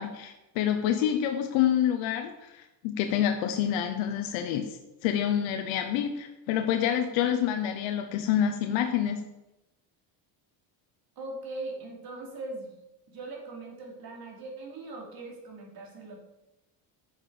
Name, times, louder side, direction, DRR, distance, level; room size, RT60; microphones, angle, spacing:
voice 1, 0.0-9.2, left 10 dB, 80° left, 6 dB, 1.0 m, -27 dB
voice 2, 11.1-12.8 13.1-16.2, right 2 dB, 50° right, -1 dB, 3.4 m, -40 dB
9.2 x 7.4 x 5.0 m, 0.98 s
supercardioid pair, 90°, 46 cm